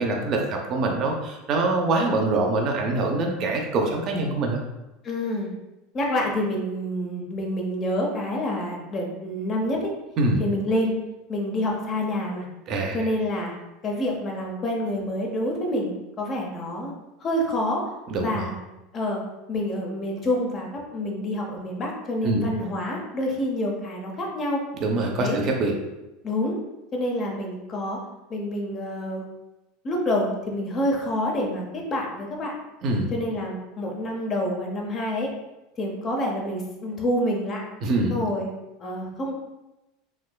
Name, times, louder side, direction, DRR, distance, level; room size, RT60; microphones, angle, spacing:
voice 1, 0.0-4.6 10.2-10.4 12.7-13.0 18.1-18.5 22.2-22.5 24.8-25.7 32.8-33.1 37.8-38.1, right 2 dB, 45° right, 1 dB, 0.5 m, -24 dB
voice 2, 5.0-5.5 5.9-9.9 10.4-10.9 11.3-12.5 12.9-13.5 13.8-16.9 17.2-17.8 18.2-18.6 18.9-19.2 19.5-24.6 25.2-25.4 26.2-26.6 26.9-28.0 28.3-29.2 29.8-32.5 33.1-35.3 35.8-37.6 38.1-38.5 38.8-39.4, left 1 dB, 35° left, 0 dB, 0.7 m, -27 dB
3.3 x 2.9 x 2.3 m, 0.97 s
figure-of-eight pair, 80°, 0 cm